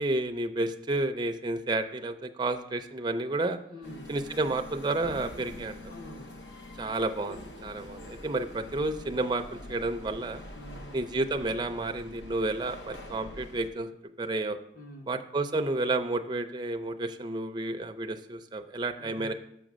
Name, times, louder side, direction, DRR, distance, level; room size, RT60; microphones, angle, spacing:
voice 1, 0.0-3.6 4.1-5.8 6.8-10.4 10.9-13.9 14.2-14.6 15.1-19.3, right 2 dB, 25° right, 7 dB, 0.4 m, -31 dB
voice 2, 3.7-4.2 5.9-6.5 10.5-11.0 14.7-15.2 19.0-19.3, equal, 45° left, 2 dB, 1.2 m, -46 dB
sound 1, 3.8-13.7, left 1 dB, 70° left, 0.8 m, -45 dB
7.0 x 5.0 x 6.1 m, 0.77 s
head